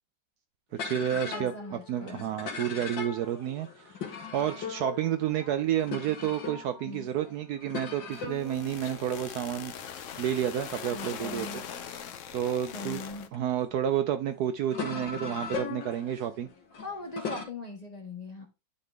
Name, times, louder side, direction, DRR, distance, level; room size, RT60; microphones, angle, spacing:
sound 1, 0.7-13.4 14.0-17.4, left 5 dB, 85° left, 2.2 m, -40 dB
voice 1, 0.7-4.0 4.3-11.6 12.3-13.0 13.3-16.5, right 10 dB, 70° right, 1.0 m, -30 dB
voice 2, 1.2-2.4 6.8-7.1 10.9-11.6 12.7-13.3 16.8-18.5, left 2 dB, 25° left, 1.2 m, -40 dB
sound 2, 8.1-13.3, left 8 dB, 60° left, 0.8 m, -41 dB
10.5 x 3.7 x 3.5 m
omnidirectional pair, 1.9 m